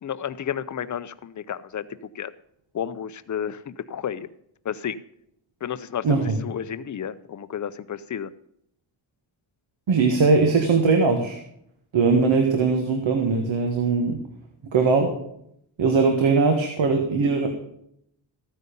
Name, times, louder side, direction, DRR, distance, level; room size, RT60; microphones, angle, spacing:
voice 1, 0.0-1.9 2.1-2.3 2.7-4.3 4.6-5.0 5.6-8.3, left 8 dB, 40° left, 14 dB, 0.6 m, -31 dB
voice 2, 6.0-6.3 9.9-11.4 11.9-14.2 14.7-15.1 15.8-17.5, right 4 dB, 70° right, 3 dB, 1.7 m, -20 dB
14.0 x 9.5 x 5.3 m, 0.73 s
wide cardioid pair, 160°, 47 cm